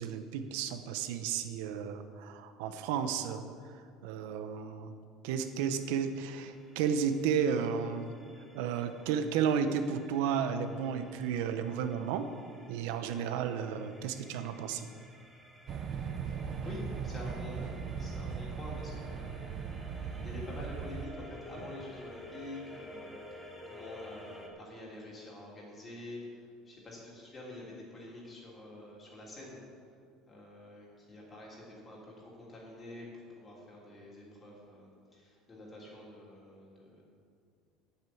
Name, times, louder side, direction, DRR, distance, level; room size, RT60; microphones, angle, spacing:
voice 1, 0.0-3.4 4.0-4.9 5.2-8.1 8.5-12.3 12.7-14.9, right 7 dB, 80° right, 9 dB, 0.8 m, -33 dB
sound 1, 5.6-24.5, left 1 dB, 5° left, 1.4 m, -53 dB
sound 2, 15.7-21.1, right 6 dB, 35° right, 0.7 m, -38 dB
voice 2, 16.6-29.6 30.3-37.0, left 1 dB, 20° left, -4 dB, 3.3 m, -47 dB
9.1 x 8.8 x 7.9 m, 2.2 s
cardioid pair, 160°, 0 cm